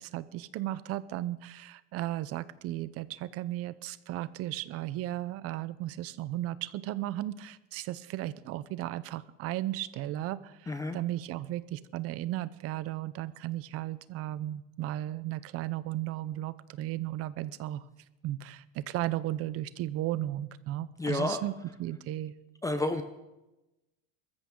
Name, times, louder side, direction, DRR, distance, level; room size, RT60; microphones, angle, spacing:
voice 1, 0.0-17.8 18.2-21.5 21.8-22.3, right 14 dB, 45° right, 16 dB, 0.7 m, -35 dB
voice 2, 10.7-11.0 21.0-21.4 22.6-23.0, left 2 dB, 10° left, 8 dB, 0.6 m, -30 dB
21.5 x 14.0 x 3.8 m, 1.0 s
cardioid pair, 155°, 33 cm